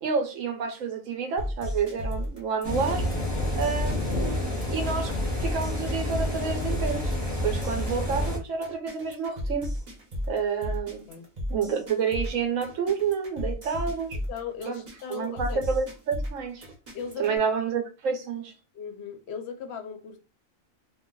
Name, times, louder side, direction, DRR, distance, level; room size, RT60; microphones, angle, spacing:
voice 1, 0.0-3.1 3.6-7.1 7.4-9.7 10.3-11.0 11.5-14.2 14.7-14.8 15.1-16.6 17.2-18.5, right 6 dB, 75° right, 1.0 m, -29 dB
sound 1, 1.4-17.4, equal, 35° right, 0.9 m, -34 dB
sound 2, 2.6-8.4, left 1 dB, 15° left, 0.8 m, -29 dB
voice 2, 14.3-15.6 16.9-17.4 18.7-20.2, left 6 dB, 65° left, 0.7 m, -37 dB
2.4 x 2.2 x 3.6 m
omnidirectional pair, 1.4 m